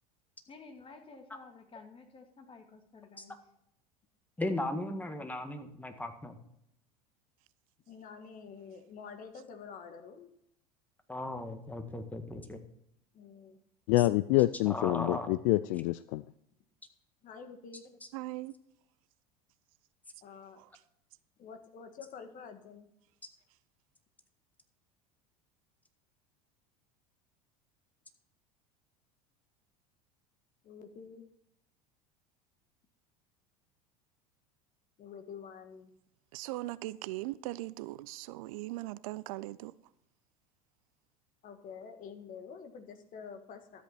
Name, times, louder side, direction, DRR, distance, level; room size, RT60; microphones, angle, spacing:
voice 1, 0.5-3.4, left 4 dB, 30° left, 2.2 m, -52 dB
voice 2, 4.4-6.4 11.1-12.6 14.6-15.3, left 1 dB, 10° left, 1.7 m, -36 dB
voice 3, 7.9-10.3 13.1-13.6 17.2-17.8 20.2-20.6 21.4-22.9 30.6-31.2 35.0-35.9 41.4-43.8, left 6 dB, 45° left, 1.7 m, -48 dB
voice 4, 13.9-16.2, left 17 dB, 60° left, 0.4 m, -27 dB
voice 5, 18.1-18.5 36.3-39.7, right 18 dB, 65° right, 0.5 m, -39 dB
13.0 x 8.3 x 4.3 m
hypercardioid pair, 80°, 20 cm